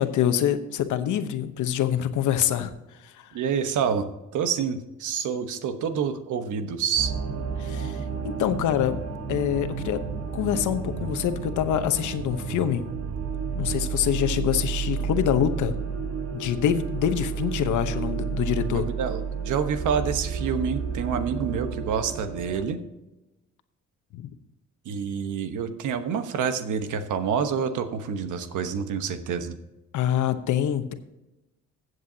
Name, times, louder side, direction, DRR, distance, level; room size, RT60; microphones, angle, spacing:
voice 1, 0.0-2.7 3.0-3.3 7.6-9.0 9.3-10.0 10.3-12.9 13.5-15.8 16.3-18.8 24.1-24.3 29.9-30.9, left 10 dB, 75° left, 9 dB, 1.0 m, -25 dB
voice 2, 3.3-7.1 18.7-22.8 24.8-29.6, right 7 dB, 80° right, 8 dB, 1.2 m, -28 dB
sound 1, 7.0-22.6, right 6 dB, 55° right, 1.3 m, -31 dB
15.5 x 8.0 x 2.8 m, 1.0 s
cardioid pair, 90°, 30 cm